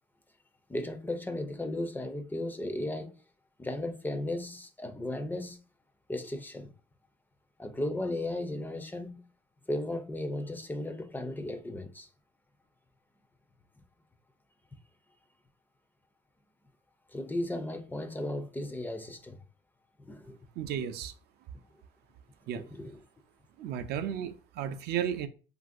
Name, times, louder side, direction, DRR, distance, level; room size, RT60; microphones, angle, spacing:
voice 1, 0.7-3.1 3.6-5.6 6.1-6.7 7.6-9.3 9.7-12.1 17.1-19.4 20.0-20.4 22.7-22.9, left 1 dB, 10° left, 0.3 m, -35 dB
voice 2, 20.6-21.1 22.5-22.6 23.6-25.3, right 9 dB, 75° right, 0.4 m, -33 dB
3.1 x 2.5 x 2.4 m
cardioid pair, 110°, 17 cm